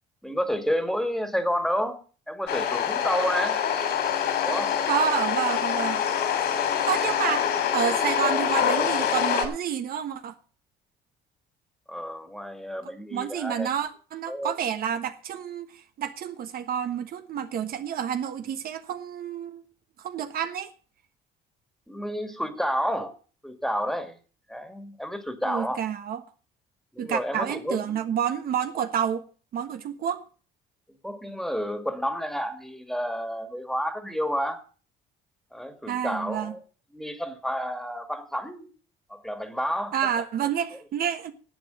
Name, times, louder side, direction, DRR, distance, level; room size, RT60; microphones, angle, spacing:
voice 1, 0.2-2.0 2.3-3.6 4.4-4.9 11.9-13.7 14.3-14.5 21.9-23.1 23.4-24.2 24.5-25.8 26.9-28.0 31.0-34.6 35.5-36.6 36.9-38.7 39.1-40.0, equal, ahead, 2.0 m, -30 dB
sound 1, 2.5-9.5, left 8 dB, 75° left, 3.4 m, -25 dB
voice 2, 4.9-6.0 6.9-10.3 12.8-19.6 20.0-20.7 25.4-26.2 27.0-29.3 29.5-30.2 35.9-36.5 39.9-41.3, right 8 dB, 60° right, 1.3 m, -29 dB
11.0 x 8.2 x 7.6 m
cardioid pair, 110°, 17 cm